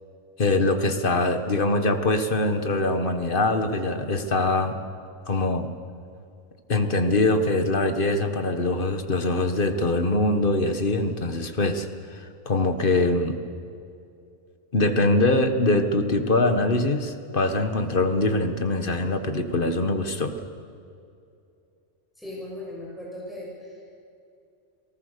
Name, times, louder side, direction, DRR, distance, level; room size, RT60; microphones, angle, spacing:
voice 1, 0.4-4.8 5.3-5.7 6.7-13.4 14.7-20.4, left 2 dB, 45° left, 7 dB, 1.7 m, -23 dB
voice 2, 22.2-23.9, left 1 dB, ahead, -5 dB, 6.3 m, -38 dB
28.5 x 19.0 x 6.8 m, 2.5 s
omnidirectional pair, 1.2 m